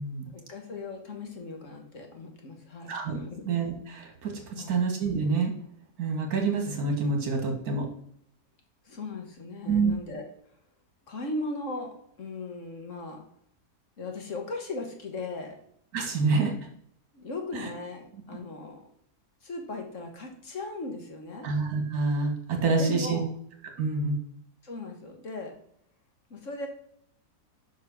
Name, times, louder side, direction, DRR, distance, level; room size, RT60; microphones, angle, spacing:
voice 1, 0.3-3.5 4.6-4.8 8.8-10.3 11.1-13.2 14.0-15.6 17.1-18.8 19.4-21.5 22.7-23.3 24.6-25.5 26.3-26.7, left 2 dB, 55° left, 2 dB, 1.6 m, -38 dB
voice 2, 2.9-3.2 3.5-5.5 6.0-7.9 9.7-9.9 15.9-16.5 17.5-17.7 21.4-23.2 23.8-24.2, right 4 dB, 70° right, 3 dB, 1.9 m, -27 dB
5.5 x 5.0 x 6.0 m, 0.67 s
omnidirectional pair, 1.7 m